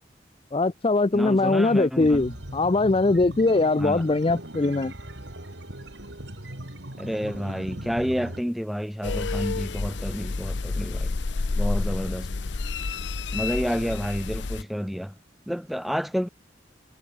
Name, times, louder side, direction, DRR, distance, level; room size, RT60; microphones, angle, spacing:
voice 1, 0.5-4.9, left 2 dB, 30° left, 0.5 m, -21 dB
voice 2, 1.1-2.2 3.8-4.0 7.0-11.1 11.6-12.3 13.3-15.2 15.5-16.3, equal, ahead, 5.2 m, -29 dB
sound 1, 2.0-8.4, right 1 dB, 75° right, 4.8 m, -39 dB
sound 2, 9.0-14.6, left 3 dB, 80° left, 0.7 m, -29 dB
head